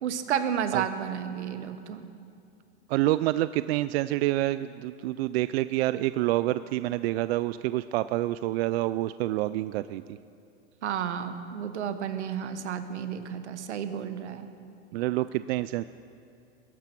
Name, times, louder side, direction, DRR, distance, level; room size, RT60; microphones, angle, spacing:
voice 1, 0.0-2.1 10.8-14.5, right 8 dB, 90° right, 10 dB, 1.3 m, -32 dB
voice 2, 2.9-10.2 14.9-15.8, right 16 dB, 65° right, 14 dB, 0.5 m, -27 dB
20.5 x 11.0 x 6.0 m, 2.6 s
hypercardioid pair, 120°, 33 cm